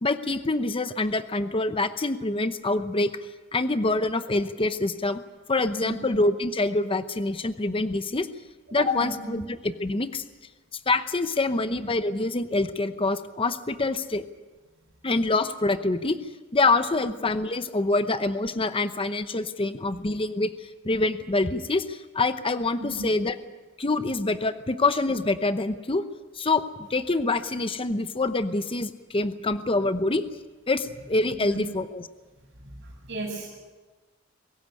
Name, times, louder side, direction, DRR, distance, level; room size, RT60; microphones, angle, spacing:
voice 1, 0.0-3.1 3.5-5.2 5.5-8.3 8.7-10.2 10.9-14.2 15.0-16.2 16.5-23.4 23.8-26.0 26.3-30.2 30.7-32.1, left 2 dB, 25° left, 11 dB, 0.8 m, -26 dB
voice 2, 8.7-9.4 22.8-23.1 31.4-31.6 32.6-33.6, right 1 dB, 55° right, -5 dB, 6.0 m, -35 dB
23.5 x 15.5 x 9.7 m, 1.3 s
head